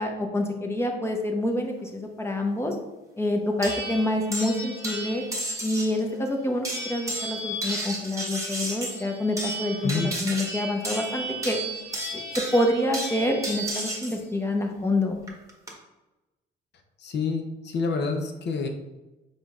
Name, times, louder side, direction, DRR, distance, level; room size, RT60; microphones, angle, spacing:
voice 1, 0.0-2.7 3.2-5.2 5.6-11.6 12.1-12.2 12.5-15.2, left 1 dB, 15° left, 2 dB, 0.8 m, -27 dB
sound 1, 3.6-6.0 6.6-14.2 15.3-15.7, right 1 dB, 15° right, 1.2 m, -33 dB
voice 2, 17.0-18.7, left 4 dB, 60° left, 5 dB, 0.7 m, -28 dB
4.9 x 4.0 x 2.4 m, 1.1 s
cardioid pair, 90°, 20 cm